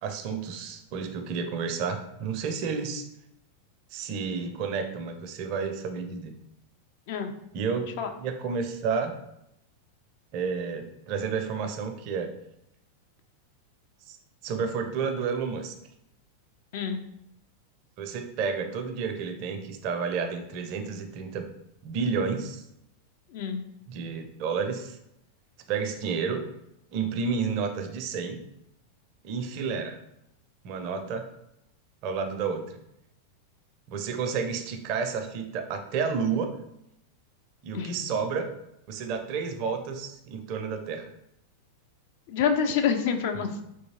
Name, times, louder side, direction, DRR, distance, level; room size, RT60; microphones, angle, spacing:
voice 1, 0.0-3.0 3.9-6.4 7.5-7.9 8.2-9.1 10.3-12.3 14.1-14.2 14.4-15.7 18.0-21.5 21.8-22.6 23.9-25.0 25.7-26.4 26.9-28.4 29.2-30.0 30.6-31.3 32.0-32.8 33.9-36.6 37.6-38.5 38.9-41.1, right 5 dB, 45° right, 6 dB, 0.4 m, -31 dB
voice 2, 23.3-23.6 37.7-38.1 42.3-43.6, left 7 dB, 50° left, 6 dB, 0.3 m, -27 dB
3.5 x 2.8 x 2.7 m, 0.81 s
figure-of-eight pair, 90°, 0 cm